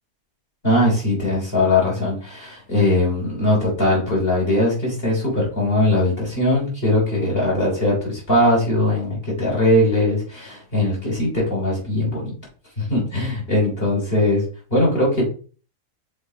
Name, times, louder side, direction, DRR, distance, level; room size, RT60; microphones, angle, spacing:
voice 1, 0.6-12.3 12.8-15.2, left 1 dB, 40° left, -4 dB, 3.8 m, -20 dB
6.5 x 4.1 x 4.8 m, 0.39 s
omnidirectional pair, 1.6 m